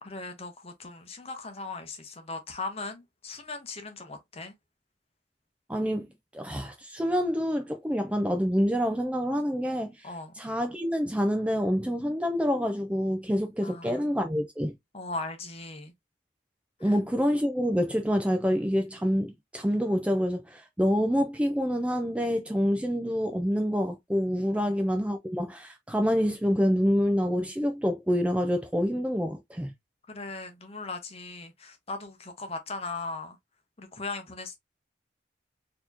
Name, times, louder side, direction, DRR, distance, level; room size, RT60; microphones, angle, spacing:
voice 1, 0.0-4.5 10.0-10.3 13.6-14.0 14.9-15.9 16.8-17.0 24.5-24.7 30.1-33.4 33.8-34.6, left 3 dB, 30° left, 0.8 m, -38 dB
voice 2, 5.7-10.1 10.4-14.7 16.8-29.7, equal, 5° right, 0.4 m, -27 dB
4.1 x 2.9 x 2.6 m
head